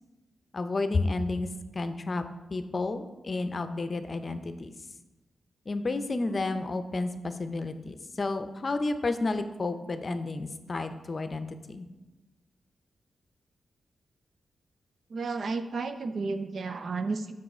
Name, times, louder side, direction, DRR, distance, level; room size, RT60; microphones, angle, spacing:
voice 1, 0.5-1.5 1.7-2.2 2.5-4.7 5.7-11.9, left 3 dB, 40° left, 9 dB, 0.6 m, -31 dB
voice 2, 15.1-17.3, right 4 dB, 60° right, 9 dB, 0.5 m, -32 dB
7.0 x 6.1 x 4.3 m, 1.1 s
cardioid pair, 95°, 0 cm